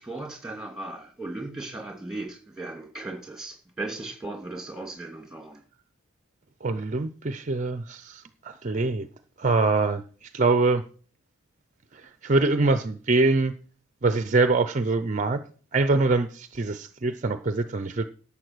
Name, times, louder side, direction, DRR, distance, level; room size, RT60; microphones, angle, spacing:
voice 1, 0.0-5.6, right 2 dB, 5° right, 2.8 m, -37 dB
voice 2, 6.6-9.1 9.4-10.8 11.9-13.5 14.0-15.4 15.7-18.1, right 3 dB, 35° right, 0.5 m, -24 dB
11.5 x 7.2 x 6.1 m
head